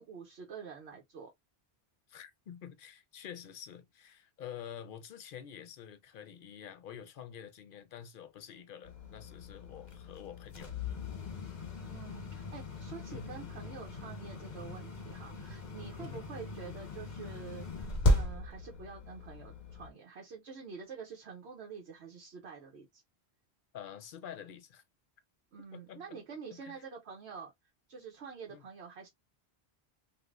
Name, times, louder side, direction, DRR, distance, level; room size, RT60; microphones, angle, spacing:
voice 1, 0.0-1.3 11.9-23.0 25.5-27.5 27.9-29.1, right 6 dB, 85° right, 1.0 m, -47 dB
voice 2, 2.1-10.7 13.1-13.3 16.0-16.3 23.7-24.8 25.7-26.2 26.5-26.8 28.5-28.7, left 9 dB, 60° left, 0.7 m, -48 dB
sound 1, 8.8-19.9, left 1 dB, 45° left, 1.1 m, -37 dB
3.2 x 2.5 x 2.3 m
omnidirectional pair, 1.1 m